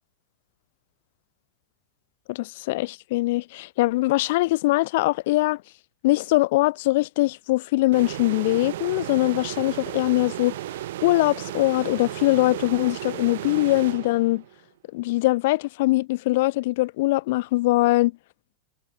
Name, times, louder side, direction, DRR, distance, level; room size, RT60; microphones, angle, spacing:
voice 1, 2.3-5.6 6.0-10.6 11.0-14.4 14.9-18.1, left 19 dB, 50° left, 3.0 m, -22 dB
sound 1, 7.9-14.6, right 14 dB, 55° right, 5.1 m, -34 dB
figure-of-eight pair, 90°, 0 cm